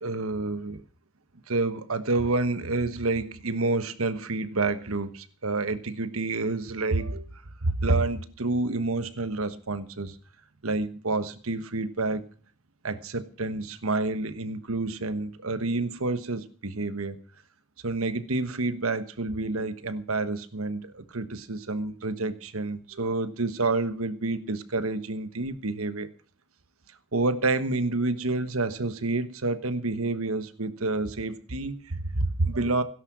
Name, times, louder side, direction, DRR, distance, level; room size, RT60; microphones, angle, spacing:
voice 1, 0.0-0.8 1.5-7.3 7.6-10.2 10.6-12.2 12.8-17.2 17.8-26.1 27.1-32.8, right 3 dB, 80° right, 1.3 m, -28 dB
16.5 x 11.0 x 6.1 m
head